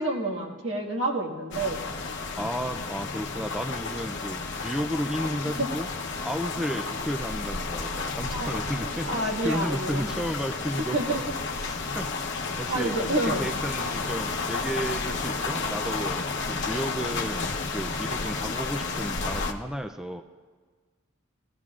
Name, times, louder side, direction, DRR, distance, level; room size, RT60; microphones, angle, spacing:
voice 1, 0.0-1.8 5.6-5.7 8.3-8.5 9.1-10.1 10.9-11.2 12.7-13.5, right 2 dB, 70° right, 0 dB, 1.8 m, -28 dB
sound 1, 1.5-19.5, left 4 dB, 60° left, 0.9 m, -32 dB
voice 2, 2.4-5.9 6.2-11.0 11.5-20.2, equal, 5° right, 6 dB, 0.4 m, -33 dB
20.0 x 15.0 x 2.4 m, 1.5 s
head